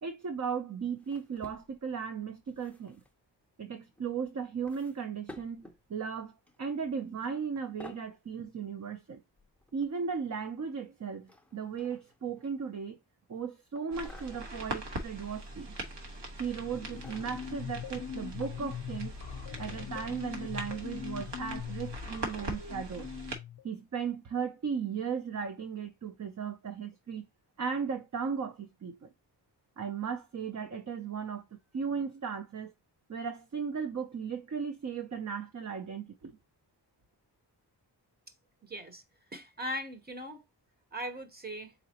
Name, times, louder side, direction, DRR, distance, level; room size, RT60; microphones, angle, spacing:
voice 1, 0.0-3.0 3.6-5.6 5.9-9.2 9.7-13.0 13.3-15.7 16.4-19.2 19.6-23.1 23.6-27.2 27.6-29.1 29.8-31.4 31.7-32.7 33.1-36.4, right 6 dB, 40° right, 0.5 m, -36 dB
sound 1, 1.0-2.0 2.4-3.1 3.9-4.1 4.7-5.8 6.5-6.8 7.1-7.3 7.6-8.1 9.4-10.2 11.3-12.8 13.8-14.6 15.4-15.9 16.3-17.6 18.4-18.5 19.1-19.2, left 2 dB, 5° left, 0.6 m, -54 dB
sound 2, 13.9-23.4, right 1 dB, 75° right, 1.3 m, -42 dB
sound 3, 16.5-23.6, left 8 dB, 55° left, 0.6 m, -42 dB
voice 2, 38.6-39.0 39.3-40.4 40.9-41.7, equal, 20° right, 0.9 m, -39 dB
4.0 x 3.9 x 2.8 m
wide cardioid pair, 125°, 42 cm